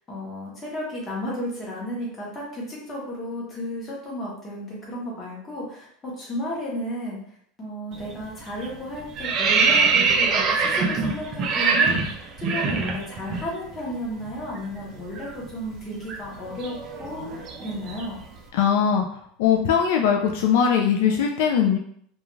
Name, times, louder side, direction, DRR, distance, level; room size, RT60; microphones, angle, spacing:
voice 1, 0.0-7.2 7.6-18.2, equal, 15° left, -5 dB, 0.9 m, -33 dB
sound 1, 7.9-8.2 8.5-13.5 13.7-13.9 14.2-18.3, right 4 dB, 30° right, 0.4 m, -24 dB
voice 2, 18.5-19.0 19.4-21.8, left 7 dB, 65° left, 2 dB, 0.3 m, -20 dB
2.4 x 2.3 x 3.0 m, 0.64 s
supercardioid pair, 175°, 0 cm